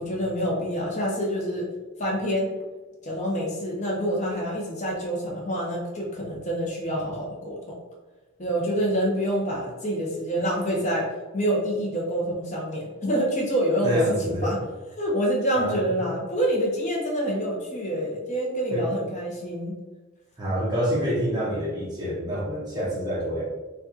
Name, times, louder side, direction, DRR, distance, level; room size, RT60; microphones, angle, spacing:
voice 1, 0.0-1.7 2.0-2.5 3.0-7.7 8.4-11.1 11.3-14.0 14.4-14.6 15.0-19.8, equal, 35° left, -3 dB, 0.8 m, -27 dB
voice 2, 13.8-14.6 15.5-15.8 18.7-18.8 20.4-23.4, equal, 20° right, -6 dB, 1.1 m, -27 dB
4.6 x 2.5 x 2.8 m, 1.2 s
head